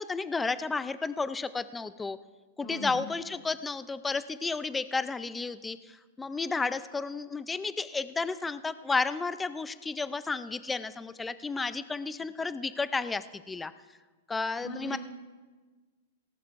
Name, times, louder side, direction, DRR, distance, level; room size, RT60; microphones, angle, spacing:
voice 1, 0.0-2.2 2.6-13.7 14.3-15.0, left 4 dB, 10° left, 13 dB, 0.4 m, -32 dB
voice 2, 2.6-3.0 14.6-15.0, left 1 dB, 30° left, -2 dB, 1.6 m, -39 dB
18.0 x 18.0 x 2.5 m, 1.3 s
supercardioid pair, 155°, 0 cm